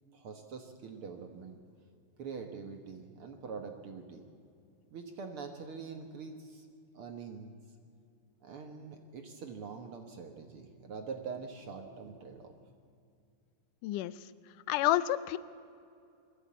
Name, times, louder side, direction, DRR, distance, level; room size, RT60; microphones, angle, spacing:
voice 1, 0.1-1.6 2.2-4.3 4.9-6.7 6.9-7.6 8.4-12.5, right 5 dB, 60° right, 5 dB, 1.6 m, -44 dB
voice 2, 13.8-14.1 14.7-15.4, left 14 dB, 80° left, 16 dB, 2.1 m, -29 dB
22.0 x 14.5 x 8.5 m, 2.5 s
omnidirectional pair, 3.8 m